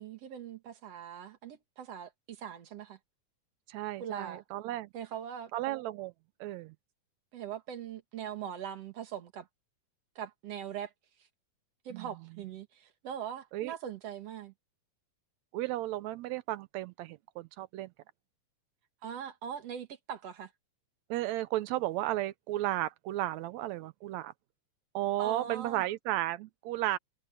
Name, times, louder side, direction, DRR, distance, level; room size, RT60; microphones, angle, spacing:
voice 1, 0.0-3.0 4.0-4.4 4.9-5.5 7.3-9.5 10.2-10.9 11.8-14.5 19.0-20.5 25.2-25.8, right 9 dB, 60° right, 2.6 m, -41 dB
voice 2, 3.7-4.9 5.5-6.1 6.4-6.7 11.9-12.1 13.5-13.7 15.5-17.9 21.1-24.3 25.0-27.0, right 15 dB, 80° right, 1.9 m, -34 dB
omnidirectional pair, 3.3 m